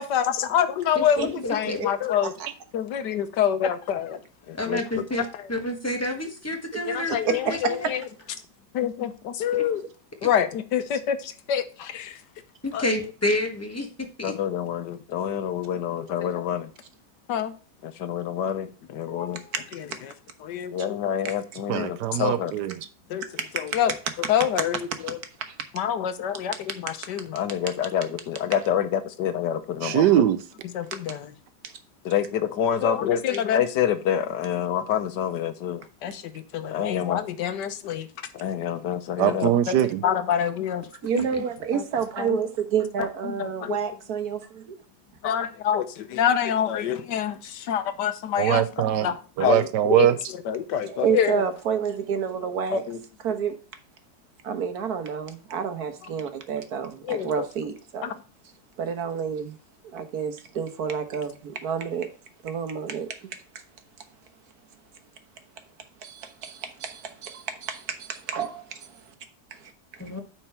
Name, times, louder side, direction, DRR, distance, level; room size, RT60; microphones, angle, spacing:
voice 1, 0.0-2.3 2.7-4.2 4.5-4.8 6.8-8.1 8.7-9.8 10.2-12.2 12.7-12.8 14.2-16.7 17.3-17.5 17.8-19.4 19.7-19.8 20.4-22.5 23.1-23.2 23.5-23.9 24.3-25.2 25.7-30.0 30.7-31.3 32.0-38.1 38.3-39.8 40.0-40.9 41.1-41.3 41.7-41.8 42.2-42.4 43.2-43.8 45.2-48.6 49.0-49.1 49.4-50.1 50.5-51.4 52.7-53.0 57.0-57.4 58.0-58.1, left 9 dB, 90° left, 1.5 m, -26 dB
voice 2, 0.9-1.8 4.6-7.6 9.5-9.6 12.6-14.3 70.0-70.2, left 1 dB, 10° left, 1.3 m, -29 dB
voice 3, 7.3-8.0 21.2-21.3 23.4-23.8 25.4-25.5 31.6-31.7 41.0-44.7 50.8-52.8 53.2-53.6 54.4-58.1 58.8-59.6 59.8-62.1 62.4-63.3 66.0-69.0 69.6-69.7, right 7 dB, 65° right, 1.6 m, -29 dB
voice 4, 21.7-22.9 29.8-30.4 39.2-40.0 48.4-50.2, right 11 dB, 85° right, 1.3 m, -22 dB
9.1 x 4.6 x 4.4 m
omnidirectional pair, 1.8 m